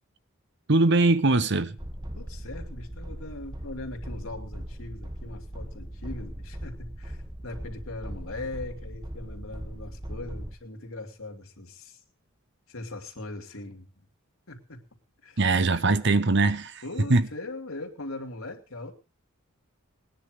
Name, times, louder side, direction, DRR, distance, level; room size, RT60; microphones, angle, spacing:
voice 1, 0.7-1.8 15.4-16.8 17.1-17.3, right 3 dB, 55° right, 0.9 m, -21 dB
sound 1, 1.8-10.5, equal, 20° right, 1.4 m, -39 dB
voice 2, 2.1-7.2 7.4-12.0 12.7-13.9 14.5-14.8 15.2-15.4 16.8-18.9, left 2 dB, 75° left, 2.7 m, -40 dB
20.0 x 10.0 x 5.1 m
head